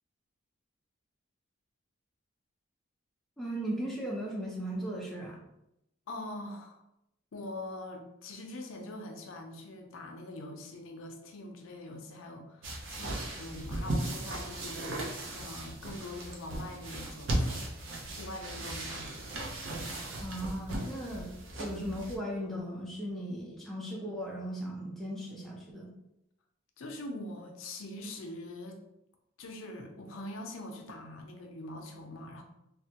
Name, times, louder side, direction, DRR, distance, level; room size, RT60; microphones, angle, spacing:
voice 1, 3.4-5.4 20.2-25.9, equal, ahead, -5 dB, 0.5 m, -37 dB
voice 2, 6.1-6.8 7.3-14.9 15.3-17.7 18.1-19.2 26.8-28.9 29.4-32.4, left 1 dB, 80° left, 2 dB, 0.5 m, -43 dB
sound 1, 12.6-22.2, right 1 dB, 70° right, 0.6 m, -37 dB
3.3 x 2.1 x 2.8 m, 0.84 s
head